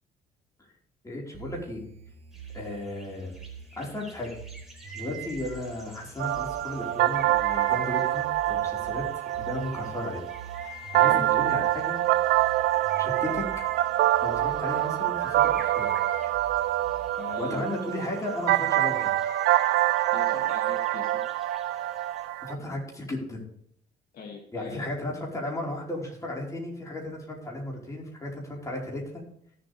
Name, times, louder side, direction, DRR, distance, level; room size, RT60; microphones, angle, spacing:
voice 1, 1.0-1.8 2.5-3.3 3.8-4.3 4.9-10.2 10.6-12.0 13.0-13.4 14.2-15.9 17.4-19.1 22.5-23.4 24.5-29.2, left 1 dB, 20° left, -3 dB, 4.8 m, -35 dB
sound 1, 1.3-17.3, right 4 dB, 35° right, 1.4 m, -47 dB
sound 2, 2.3-22.3, equal, ahead, 4.2 m, -48 dB
sound 3, 6.2-22.5, right 15 dB, 80° right, 0.5 m, -26 dB
voice 2, 17.2-17.7 20.1-21.2 24.1-24.9, left 4 dB, 60° left, 0 dB, 2.5 m, -41 dB
17.0 x 7.8 x 3.5 m, 0.67 s
cardioid pair, 110°, 17 cm